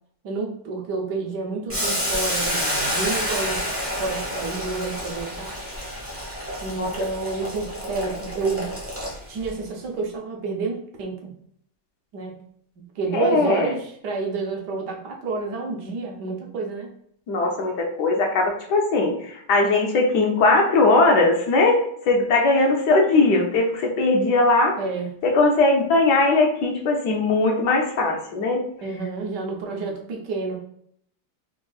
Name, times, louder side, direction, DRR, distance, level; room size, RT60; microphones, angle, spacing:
voice 1, 0.2-3.7 4.0-5.6 6.6-8.8 9.3-11.3 12.1-12.4 12.9-16.9 24.8-25.1 28.8-30.6, right 4 dB, 75° right, 0 dB, 1.3 m, -29 dB
Boiling, 1.7-9.5, equal, 10° right, 0.6 m, -29 dB
voice 2, 13.1-13.7 17.3-24.8 25.2-28.6, left 2 dB, 70° left, 1 dB, 1.2 m, -19 dB
3.7 x 3.5 x 2.3 m, 0.66 s
omnidirectional pair, 1.9 m